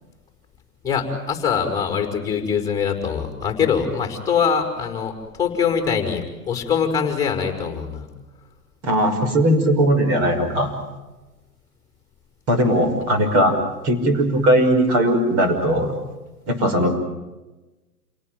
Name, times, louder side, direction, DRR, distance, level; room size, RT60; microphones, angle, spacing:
voice 1, 0.8-8.1, left 6 dB, 5° left, 4 dB, 5.0 m, -23 dB
voice 2, 8.8-10.7 12.5-13.6 13.8-15.9 16.5-16.9, equal, 30° right, 6 dB, 5.9 m, -18 dB
29.0 x 18.5 x 9.3 m, 1.1 s
hypercardioid pair, 135°, 47 cm